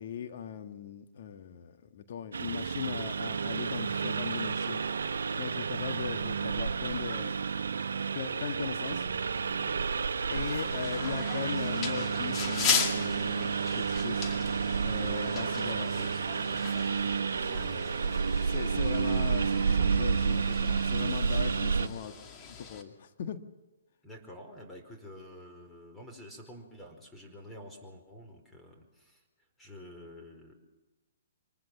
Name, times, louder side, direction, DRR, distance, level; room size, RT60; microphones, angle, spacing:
voice 1, 0.0-4.8 5.4-7.3 8.1-9.1 10.3-14.3 14.8-16.1 16.4-16.6 17.4-22.1 22.5-23.4, left 7 dB, 55° left, 7 dB, 1.7 m, -39 dB
Engine, 2.3-21.9, right 5 dB, 75° right, 1.1 m, -30 dB
sound 1, 10.3-22.8, left 6 dB, 30° left, 2.4 m, -38 dB
voice 2, 24.0-29.2 29.6-30.5, left 1 dB, 5° left, 2 dB, 4.6 m, -49 dB
24.5 x 19.5 x 7.3 m, 1.1 s
hypercardioid pair, 130°, 0 cm